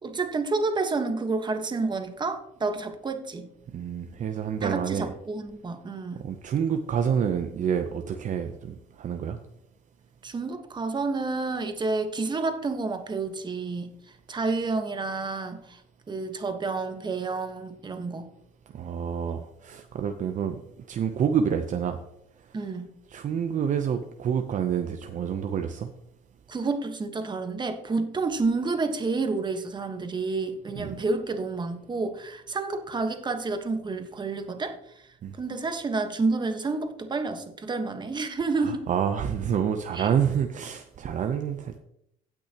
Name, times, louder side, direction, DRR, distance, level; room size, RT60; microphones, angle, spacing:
voice 1, 0.0-3.5 4.6-6.2 10.2-13.9 14.3-15.8 16.1-18.3 22.5-22.9 26.5-34.8 35.4-38.8 39.9-40.1, right 3 dB, 25° right, 7 dB, 1.3 m, -29 dB
voice 2, 3.7-5.1 6.1-9.4 18.7-20.6 20.9-22.0 23.1-25.9 30.7-31.0 35.2-35.3 38.6-41.8, right 8 dB, 50° right, 6 dB, 0.7 m, -28 dB
17.0 x 6.1 x 2.9 m, 0.77 s
cardioid pair, 110°, 17 cm